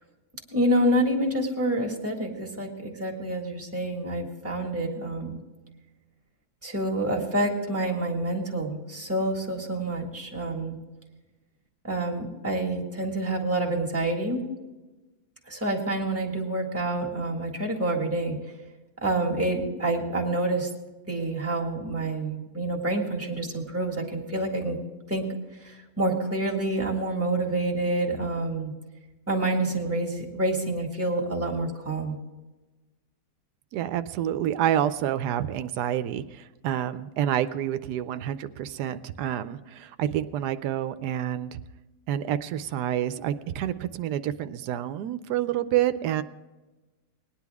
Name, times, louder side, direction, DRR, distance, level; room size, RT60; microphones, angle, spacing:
voice 1, 0.5-5.4 6.6-10.8 11.8-14.4 15.5-18.4 19.0-20.7 21.1-24.8 25.1-25.3 25.6-28.7 29.3-32.1, right 1 dB, 10° right, -1 dB, 1.7 m, -27 dB
voice 2, 33.7-41.6 42.1-46.2, right 11 dB, 90° right, 12 dB, 1.2 m, -28 dB
19.0 x 10.0 x 3.5 m, 1.1 s
omnidirectional pair, 1.7 m